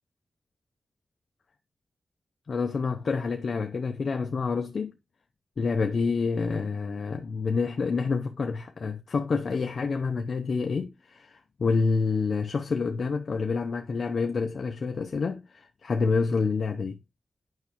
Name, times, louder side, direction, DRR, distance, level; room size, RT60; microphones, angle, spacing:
voice 1, 2.5-4.9 5.6-17.0, left 4 dB, 70° left, 0.6 m, -28 dB
9.2 x 5.7 x 3.0 m
cardioid pair, 70°, 0 cm